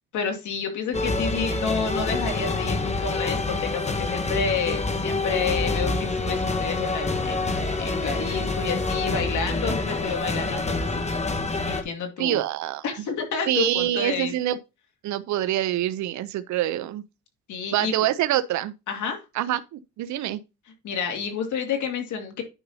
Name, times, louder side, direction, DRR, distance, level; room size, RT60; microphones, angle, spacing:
voice 1, 0.1-11.1 11.6-12.4 12.8-14.3 17.5-17.9 18.9-19.2 20.8-22.4, left 6 dB, 75° left, 2.3 m, -30 dB
sound 1, 0.9-11.8, left 3 dB, 20° left, 1.2 m, -27 dB
voice 2, 12.2-12.8 13.5-14.6 15.0-17.0 17.7-18.7 19.3-20.4, right 13 dB, 70° right, 0.6 m, -25 dB
9.8 x 5.4 x 2.7 m
cardioid pair, 90°, 30 cm